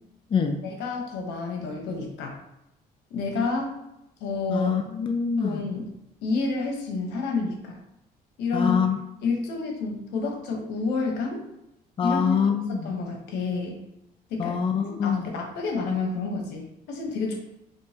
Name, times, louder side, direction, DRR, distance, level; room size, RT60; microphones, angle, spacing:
voice 1, 0.6-2.3 3.1-3.7 4.2-4.7 5.4-5.9 6.2-7.8 8.4-8.8 9.2-11.4 12.0-12.4 12.7-13.8 14.3-14.6 14.9-17.4, left 4 dB, 85° left, 1 dB, 1.1 m, -29 dB
voice 2, 4.5-5.6 8.5-9.0 12.0-12.9 14.4-15.3, left 6 dB, 30° left, 4 dB, 0.5 m, -25 dB
5.3 x 3.1 x 2.8 m, 0.85 s
cardioid pair, 110°, 17 cm